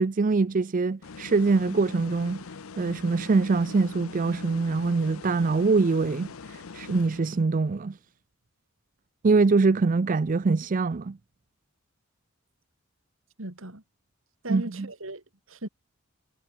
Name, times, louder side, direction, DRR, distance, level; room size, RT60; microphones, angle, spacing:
voice 1, 0.0-2.4 2.8-8.0 9.2-11.2 14.5-14.9, right 4 dB, 40° right, 0.5 m, -24 dB
sound 1, 1.0-7.6, left 4 dB, 85° left, 0.7 m, -43 dB
voice 2, 13.4-13.8 14.4-15.7, right 1 dB, 70° right, 3.4 m, -37 dB
head